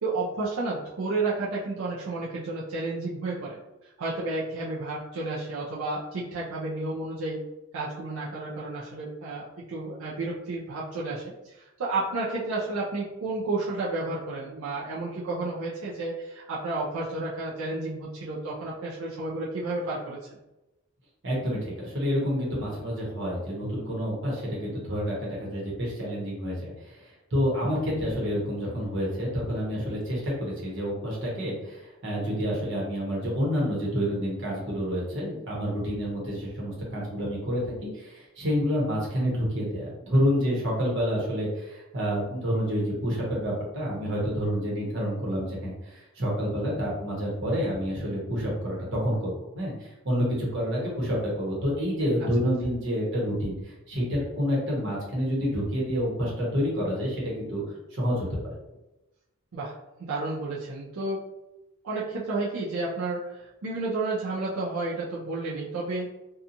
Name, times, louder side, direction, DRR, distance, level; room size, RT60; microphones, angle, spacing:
voice 1, 0.0-3.6 4.0-7.4 7.7-20.2 59.5-59.7 60.0-61.2 61.8-66.1, right 2 dB, 85° right, -6 dB, 0.5 m, -31 dB
voice 2, 21.2-57.6 57.9-58.6, equal, 60° right, -4 dB, 1.0 m, -28 dB
2.8 x 2.3 x 2.5 m, 0.99 s
head